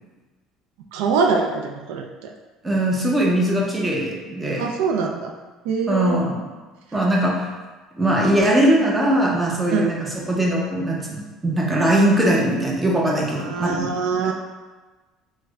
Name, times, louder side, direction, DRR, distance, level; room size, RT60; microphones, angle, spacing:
voice 1, 0.9-2.3 4.6-5.3 5.6-6.3 9.7-9.9 13.4-14.3, right 5 dB, 85° right, 3 dB, 0.3 m, -23 dB
voice 2, 2.6-4.7 5.9-6.4 6.9-7.5 7.9-13.9 14.2-14.3, right 1 dB, 15° right, -3 dB, 0.6 m, -20 dB
3.2 x 2.1 x 3.6 m, 1.3 s
cardioid pair, 130°, 0 cm